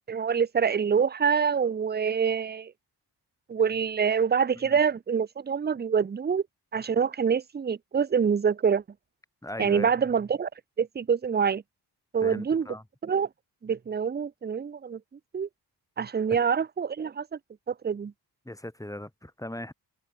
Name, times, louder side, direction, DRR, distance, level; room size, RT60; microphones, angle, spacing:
voice 1, 0.1-2.7 3.5-6.4 6.7-8.8 9.6-10.5 10.8-11.6 12.1-12.7 13.0-13.3 13.6-15.0 15.3-15.5 16.0-17.4 17.7-18.1, right 6 dB, 25° right, 0.5 m, -26 dB
voice 2, 9.4-9.9 12.2-12.8 18.4-19.7, left 1 dB, 10° left, 6.6 m, -38 dB
cardioid pair, 85°, 41 cm